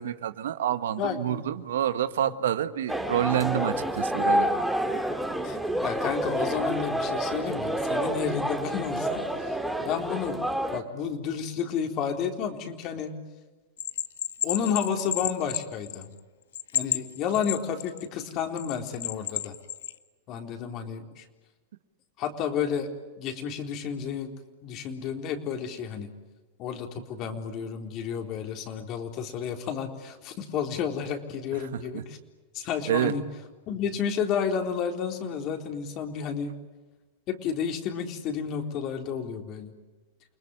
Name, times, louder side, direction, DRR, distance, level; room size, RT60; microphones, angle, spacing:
voice 1, 0.0-4.6 31.9-32.0 32.8-33.1, right 11 dB, 80° right, 11 dB, 1.5 m, -28 dB
voice 2, 1.0-1.4 5.4-10.4 10.7-13.2 14.4-16.1 16.7-19.5 20.3-21.2 22.2-22.9 23.2-24.3 24.6-26.1 26.6-32.2 32.5-33.2 33.7-36.5 37.3-39.7, left 7 dB, 45° left, 4 dB, 3.9 m, -31 dB
sound 1, 2.9-10.8, right 1 dB, ahead, 2.4 m, -28 dB
Bell, 13.8-16.2 16.5-18.1 18.6-19.9, left 12 dB, 80° left, 1.6 m, -31 dB
29.5 x 20.5 x 9.9 m, 1.2 s
hypercardioid pair, 125°, 0 cm